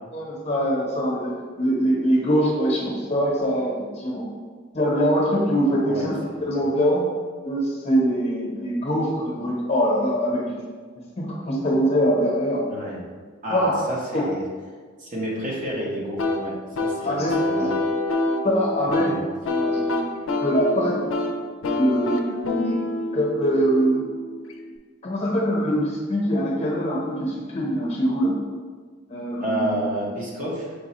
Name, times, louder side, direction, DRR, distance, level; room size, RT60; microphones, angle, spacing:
voice 1, 0.1-4.3 4.7-7.0 7.4-10.6 11.2-12.6 13.5-13.7 14.1-14.3 17.0-17.7 18.4-19.2 19.4-20.1 20.4-20.9 21.8-22.8 23.1-24.0 25.0-28.4 29.1-29.7, equal, 30° left, -3 dB, 0.9 m, -23 dB
voice 2, 5.9-6.4 12.6-13.0 13.4-14.4 15.0-17.7 18.9-19.2 29.4-30.7, right 1 dB, 40° right, -4 dB, 1.0 m, -30 dB
sound 1, 16.2-24.8, left 2 dB, 85° left, 0.5 m, -27 dB
5.3 x 2.3 x 4.1 m, 1.5 s
head